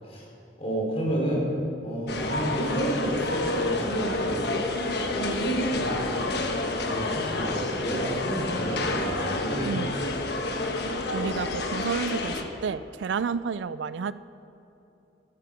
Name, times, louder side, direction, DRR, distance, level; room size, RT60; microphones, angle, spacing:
voice 1, 0.6-1.5 1.8-4.5 5.0-6.4 6.8-9.8, right 1 dB, 35° left, -3 dB, 3.7 m, -30 dB
sound 1, 2.1-12.4, left 2 dB, 65° left, 1.2 m, -29 dB
voice 2, 11.1-14.1, right 5 dB, 80° right, 16 dB, 0.4 m, -30 dB
13.5 x 13.5 x 5.0 m, 2.9 s
head